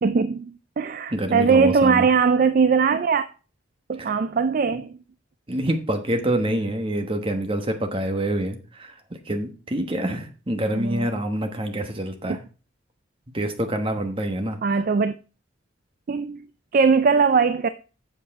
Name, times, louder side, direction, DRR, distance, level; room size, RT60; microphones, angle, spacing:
voice 1, 0.0-3.3 3.9-5.0 10.7-11.1 14.6-15.1 16.1-16.4 16.7-17.7, right 5 dB, 45° right, 0.3 m, -20 dB
voice 2, 1.1-2.1 4.0-4.2 4.7-4.8 5.5-8.9 9.3-12.4 13.3-14.8, right 1 dB, 25° right, 1.2 m, -26 dB
7.7 x 6.6 x 4.7 m
head